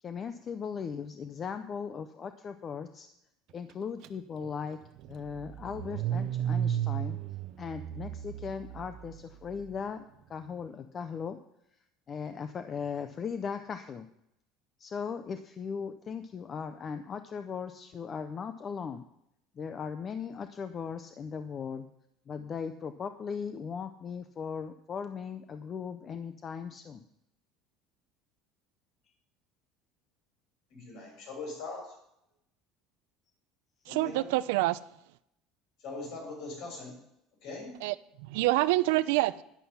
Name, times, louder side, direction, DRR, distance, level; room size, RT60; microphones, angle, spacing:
voice 1, 0.0-3.1 3.5-4.8 5.1-7.2 7.6-11.4 12.1-14.1 14.8-19.0 19.6-21.9 22.3-27.0, left 6 dB, 25° left, 0.5 m, -38 dB
Car / Engine starting, 4.0-4.1 4.4-9.7, right 10 dB, 50° right, 0.6 m, -34 dB
voice 2, 30.7-31.9 33.9-34.4 35.8-36.9 37.4-37.8, left 3 dB, 55° left, 6.4 m, -41 dB
voice 3, 33.9-34.8 37.8-37.9 38.2-39.4, right 18 dB, 85° right, 0.5 m, -26 dB
11.5 x 10.5 x 5.6 m
cardioid pair, 165°, 0 cm